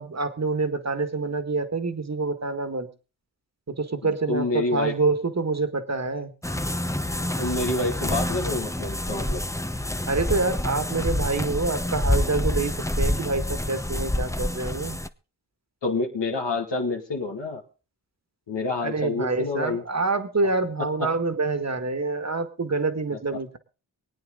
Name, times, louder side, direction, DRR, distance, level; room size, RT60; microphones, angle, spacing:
voice 1, 0.0-2.9 3.7-6.3 10.0-15.0 18.8-23.6, right 3 dB, 40° right, 10 dB, 1.8 m, -26 dB
voice 2, 4.0-4.9 7.4-9.4 15.8-17.6 18.5-19.8 20.8-21.1 23.1-23.2, left 3 dB, 80° left, 1 dB, 2.4 m, -28 dB
sound 1, 6.4-15.1, left 1 dB, 5° left, 0.9 m, -27 dB
24.5 x 8.9 x 3.9 m, 0.34 s
cardioid pair, 45°, 42 cm